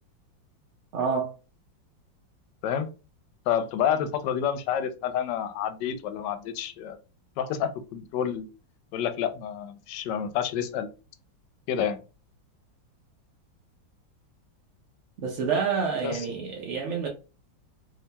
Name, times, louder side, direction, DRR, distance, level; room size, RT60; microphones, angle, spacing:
voice 1, 0.9-1.3 15.2-17.1, right 5 dB, 70° right, 0.7 m, -28 dB
voice 2, 3.5-7.0 7.4-8.5 8.9-10.9 11.7-12.0 16.0-16.3, left 9 dB, 75° left, 1.2 m, -29 dB
3.0 x 2.8 x 3.3 m
omnidirectional pair, 2.1 m